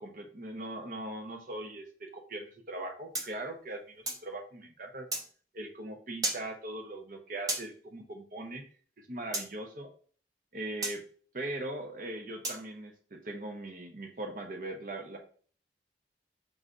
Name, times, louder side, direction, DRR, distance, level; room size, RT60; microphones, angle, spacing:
voice 1, 0.0-3.8 4.2-5.1 5.5-8.6 9.0-9.9 10.5-11.0 11.3-15.2, right 1 dB, 50° right, 3 dB, 0.8 m, -40 dB
sound 1, 3.1-4.3 5.1-5.3 6.2-6.4 7.5-7.7 9.3-9.5 10.8-11.0 12.4-12.6, right 2 dB, 20° right, 0.7 m, -33 dB
4.9 x 3.2 x 2.6 m, 0.43 s
head